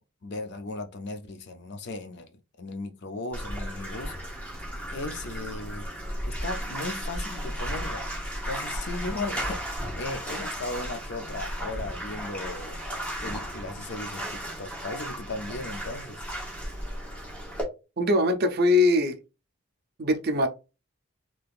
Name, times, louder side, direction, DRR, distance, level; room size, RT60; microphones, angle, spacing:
voice 1, 0.2-4.1 4.9-5.9 6.2-8.0 8.5-12.8 13.2-16.2, left 2 dB, 50° left, 0.4 m, -36 dB
Bathtub (filling or washing), 3.3-17.6, equal, 5° left, 0.9 m, -35 dB
voice 2, 18.0-19.2 20.0-20.5, left 2 dB, 45° right, 0.5 m, -22 dB
3.4 x 2.8 x 2.4 m
head